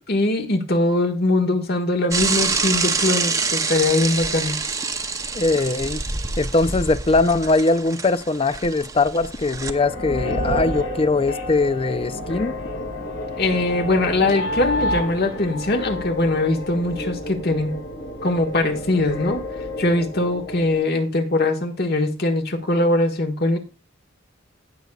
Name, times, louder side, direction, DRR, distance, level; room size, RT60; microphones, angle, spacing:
voice 1, 0.1-4.5 13.4-17.7 18.2-19.5 19.8-23.6, left 2 dB, 50° left, 1.5 m, -21 dB
Bicycle / Mechanisms, 2.1-9.7, right 4 dB, 15° right, 0.7 m, -26 dB
voice 2, 5.3-6.0 6.4-12.5, left 3 dB, 30° left, 0.5 m, -21 dB
sound 1, 9.4-20.8, left 1 dB, 80° left, 5.5 m, -29 dB
17.5 x 6.6 x 2.4 m
head